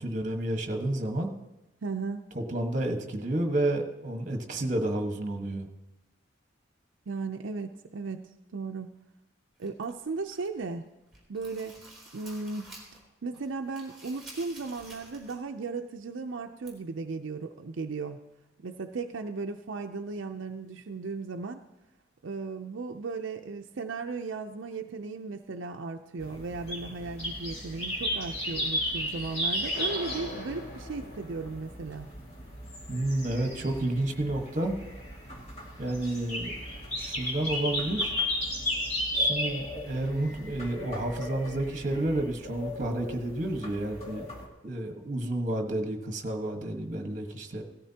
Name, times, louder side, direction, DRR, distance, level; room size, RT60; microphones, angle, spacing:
voice 1, 0.0-1.3 2.3-5.7 32.9-34.8 35.8-36.6 37.0-38.1 39.1-44.2 44.6-47.6, right 1 dB, 40° right, 4 dB, 1.3 m, -30 dB
voice 2, 1.8-2.2 7.1-9.0 9.6-10.8 11.3-11.8 12.1-12.7 13.2-18.2 18.6-21.6 22.2-32.1, right 4 dB, 75° right, 4 dB, 0.5 m, -36 dB
sound 1, 9.6-10.6 11.0-13.1 13.3-15.5 15.8-15.9 16.6-16.7, right 2 dB, ahead, 3.2 m, -50 dB
sound 2, 26.2-44.4, left 1 dB, 30° left, 2.1 m, -35 dB
sound 3, 29.7-32.7, left 2 dB, 80° left, 3.8 m, -43 dB
17.0 x 13.5 x 2.8 m, 1.0 s
head